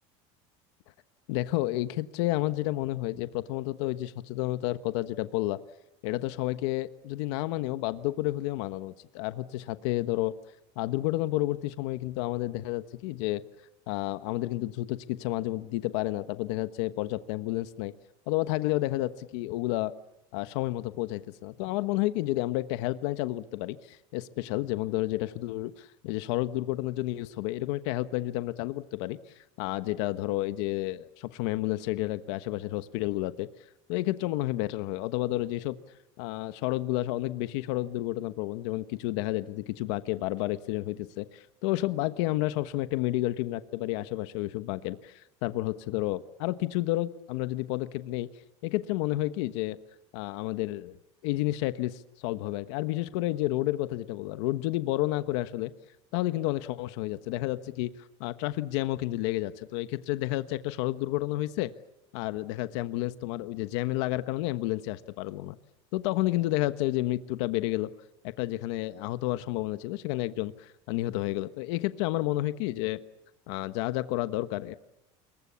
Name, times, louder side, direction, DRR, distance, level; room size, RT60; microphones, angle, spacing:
voice 1, 1.3-5.6 6.0-10.3 10.8-13.4 13.9-17.9 18.3-19.9 20.3-33.5 33.9-35.8 36.2-48.3 48.6-49.8 50.1-51.0 51.2-55.7 56.1-61.7 62.1-65.6 65.9-67.9 68.2-73.0 73.5-74.7, left 17 dB, 80° left, 12 dB, 1.2 m, -30 dB
28.0 x 23.0 x 7.1 m, 0.93 s
cardioid pair, 155°, 15 cm